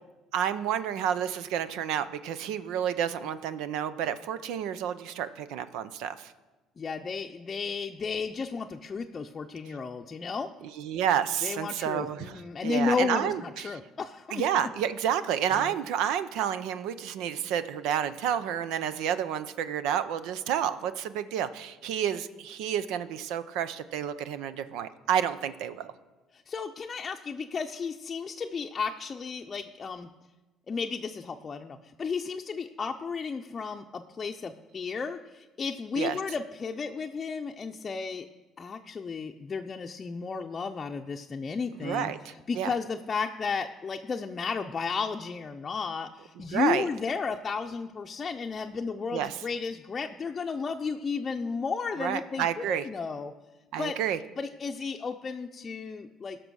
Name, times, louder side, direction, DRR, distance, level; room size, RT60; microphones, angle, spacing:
voice 1, 0.3-6.3 10.6-13.8 14.3-25.9 36.0-36.2 41.8-42.7 46.5-46.9 49.1-49.4 52.0-52.8 53.7-54.2, right 9 dB, 80° right, 13 dB, 0.6 m, -30 dB
voice 2, 6.8-10.5 11.4-14.4 15.5-15.8 26.3-30.1 30.7-38.3 38.6-53.3 53.8-54.0 54.4-56.4, left 5 dB, 35° left, 3 dB, 0.6 m, -33 dB
16.0 x 6.0 x 6.3 m, 1.2 s
supercardioid pair, 85°, 0 cm